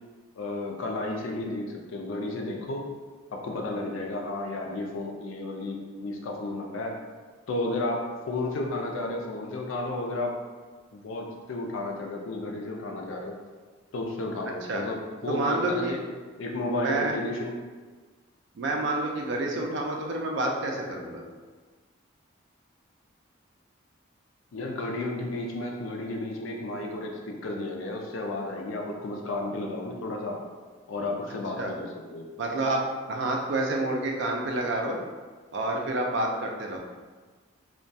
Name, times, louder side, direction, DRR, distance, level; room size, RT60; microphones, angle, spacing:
voice 1, 0.4-2.9 3.3-7.0 7.5-10.4 10.9-13.4 13.9-16.0 16.4-17.5 19.4-19.6 24.5-30.4 30.9-32.3, left 2 dB, 75° left, 1 dB, 0.4 m, -32 dB
voice 2, 15.3-16.0 16.8-17.1 18.6-21.2 31.6-31.7 32.4-32.8 33.1-35.0 35.5-36.8, right 2 dB, 60° right, 1 dB, 0.3 m, -28 dB
2.2 x 2.2 x 2.6 m, 1.4 s
head